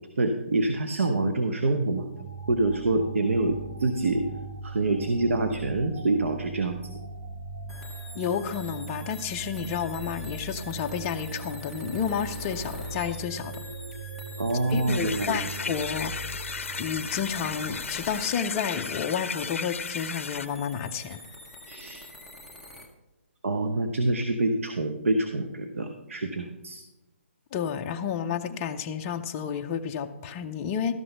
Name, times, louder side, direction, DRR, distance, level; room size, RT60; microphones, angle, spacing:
voice 1, 0.2-2.1 2.5-4.3 4.6-6.9 14.4-15.4 21.7-22.0 23.4-26.8, right 2 dB, 75° right, 7 dB, 0.9 m, -26 dB
sound 1, 2.1-18.5, right 4 dB, 90° right, 1.8 m, -40 dB
sound 2, 7.7-22.9, left 1 dB, 5° right, 0.8 m, -45 dB
voice 2, 8.1-13.6 14.7-16.1 16.8-21.2 27.5-30.9, left 7 dB, 20° left, 4 dB, 0.5 m, -31 dB
sound 3, 14.9-20.5, left 5 dB, 75° left, 0.5 m, -35 dB
12.5 x 6.0 x 5.4 m, 1.0 s
hypercardioid pair, 160°, 7 cm